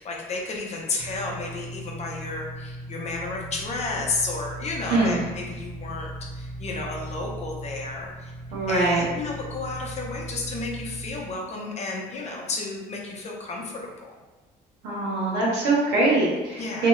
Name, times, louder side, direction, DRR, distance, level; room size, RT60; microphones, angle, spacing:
voice 1, 0.0-8.3 8.7-14.2 16.6-16.9, left 3 dB, 40° left, -1 dB, 0.6 m, -32 dB
sound 1, 1.0-11.2, right 1 dB, 10° right, 0.8 m, -38 dB
voice 2, 4.9-5.2 8.5-9.0 14.8-16.9, right 2 dB, 85° right, -4 dB, 1.0 m, -23 dB
2.8 x 2.3 x 3.1 m, 1.2 s
cardioid pair, 110°, 17 cm